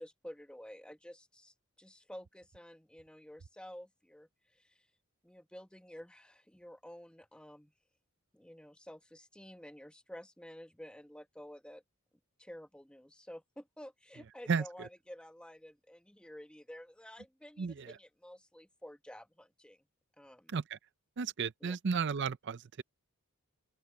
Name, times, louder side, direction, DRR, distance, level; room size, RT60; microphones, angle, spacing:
voice 1, 0.0-4.9 5.2-7.7 8.3-11.8 12.4-19.8 20.2-20.5 21.6-21.8, equal, 5° left, 1.0 m, -51 dB
voice 2, 14.5-14.9 17.6-18.0 20.5-20.8 21.2-22.8, right 5 dB, 50° right, 0.5 m, -34 dB
open air
head